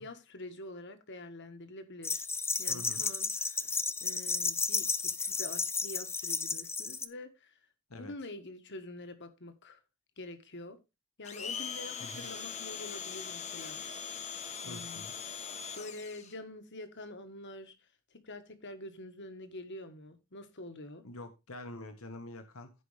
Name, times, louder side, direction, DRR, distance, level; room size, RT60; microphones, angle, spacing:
voice 1, 0.0-2.2 2.6-3.6 4.0-7.5 7.9-9.8 10.2-10.8 11.2-13.8 14.6-15.0 15.7-17.7 18.2-21.0, left 1 dB, 55° left, 1.6 m, -46 dB
sound 1, 2.0-7.1, left 4 dB, 10° left, 0.6 m, -33 dB
voice 2, 2.7-3.1 7.9-8.1 12.0-12.3 14.6-15.1 21.0-22.7, left 1 dB, 70° left, 1.5 m, -46 dB
Domestic sounds home sounds, 11.2-16.3, left 7 dB, 30° left, 1.1 m, -41 dB
15.5 x 5.2 x 3.4 m
head